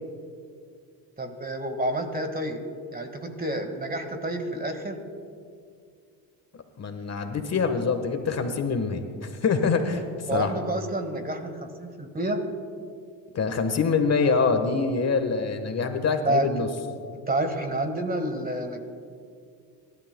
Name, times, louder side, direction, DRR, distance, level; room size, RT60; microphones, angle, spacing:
voice 1, 1.2-2.6 2.9-5.0 10.3-12.4 16.2-16.5 17.3-18.8, right 1 dB, 20° right, 6 dB, 1.8 m, -29 dB
voice 2, 6.8-10.0 10.3-10.5 13.3-16.7, left 5 dB, 40° left, 6 dB, 1.4 m, -25 dB
24.0 x 12.0 x 2.3 m, 2.3 s
supercardioid pair, 80°, 41 cm